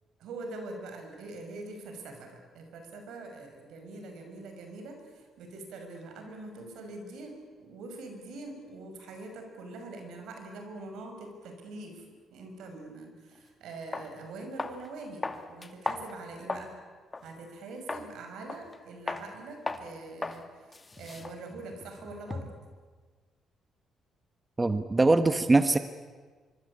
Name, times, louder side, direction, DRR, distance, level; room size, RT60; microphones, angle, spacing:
voice 1, 0.2-12.0 12.3-16.7 17.2-20.4 21.0-22.5, right 2 dB, 80° right, 5 dB, 6.0 m, -43 dB
sound 1, 13.4-13.5 13.9-14.1 14.6-14.9 15.2-16.7 17.1-17.3 17.9-18.1 18.5-18.8 19.1-19.3 19.7-19.9 20.2-20.4 20.7-22.6, left 3 dB, 25° left, 2.2 m, -36 dB
voice 2, 24.6-25.8, right 2 dB, 20° right, 10 dB, 1.3 m, -22 dB
25.5 x 24.0 x 8.6 m, 1.5 s
cardioid pair, 90°, 0 cm